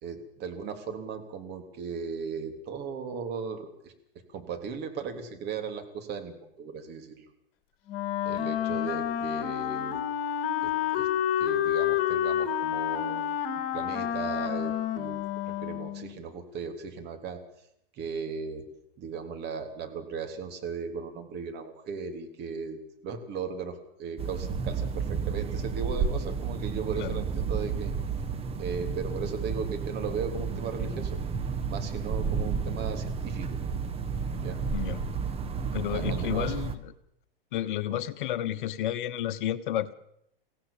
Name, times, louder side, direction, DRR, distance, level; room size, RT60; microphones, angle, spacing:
voice 1, 0.0-3.9 4.3-7.3 8.2-10.0 10.6-11.1 11.4-13.3 13.7-15.2 15.6-17.4 17.9-18.6 19.0-27.9 28.6-31.2 31.7-33.6 34.4-34.6 35.9-36.5 37.9-38.0, right 5 dB, 35° right, 6 dB, 3.4 m, -37 dB
Wind instrument woodwind instrument, 7.9-16.1, left 10 dB, 40° left, 2.5 m, -29 dB
sound 1, 24.2-36.8, right 5 dB, 20° right, 1.7 m, -31 dB
voice 2, 34.7-35.0 35.7-36.9 37.5-39.9, left 12 dB, 60° left, 13 dB, 1.1 m, -31 dB
23.5 x 16.5 x 7.3 m, 0.76 s
hypercardioid pair, 105°, 29 cm